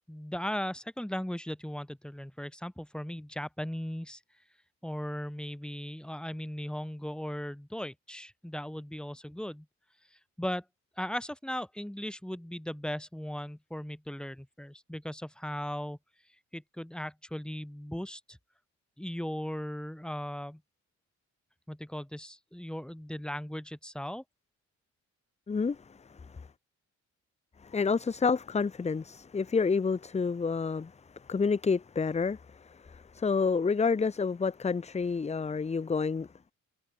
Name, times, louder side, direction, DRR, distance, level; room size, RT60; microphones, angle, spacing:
voice 1, 0.1-4.2 4.8-9.7 10.4-10.6 11.0-16.0 16.5-18.4 19.0-20.6 21.7-24.2, equal, 5° left, 4.4 m, -37 dB
voice 2, 25.5-26.5 27.6-36.3, left 5 dB, 20° left, 0.9 m, -29 dB
cardioid pair, 90°, 30 cm